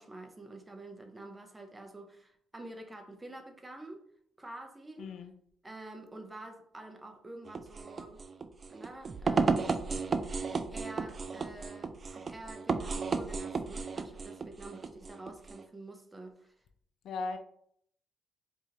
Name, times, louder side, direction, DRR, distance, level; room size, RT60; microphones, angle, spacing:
voice 1, 0.0-4.0 4.4-5.1 5.6-8.2 8.7-9.6 10.5-16.5, right 2 dB, 15° right, 0.7 m, -48 dB
voice 2, 5.0-5.3 17.0-17.4, left 4 dB, 70° left, 0.4 m, -37 dB
sound 1, 7.5-15.6, right 4 dB, 40° right, 0.3 m, -33 dB
4.7 x 2.6 x 2.8 m
cardioid pair, 90°, 0 cm